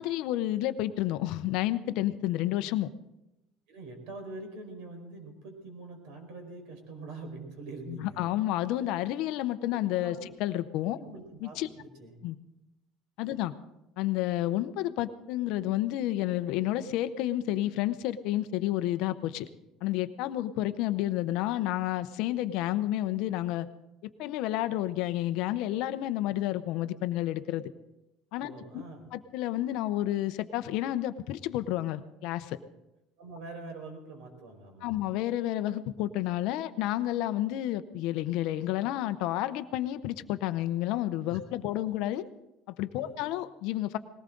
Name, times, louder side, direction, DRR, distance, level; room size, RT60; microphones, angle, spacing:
voice 1, 0.0-2.9 7.9-11.0 11.4-11.7 12.2-12.4 13.2-13.5 14.0-19.5 19.8-23.7 24.2-27.6 28.3-28.8 29.1-32.6 34.8-42.2 42.7-44.0, left 14 dB, 55° left, 12 dB, 0.7 m, -30 dB
voice 2, 3.7-8.3 9.9-10.3 11.0-12.2 28.4-29.1 33.2-35.0 41.3-41.4 42.9-43.2, right 3 dB, 65° right, 4 dB, 4.9 m, -44 dB
20.0 x 18.0 x 3.9 m, 0.93 s
cardioid pair, 180°, 0 cm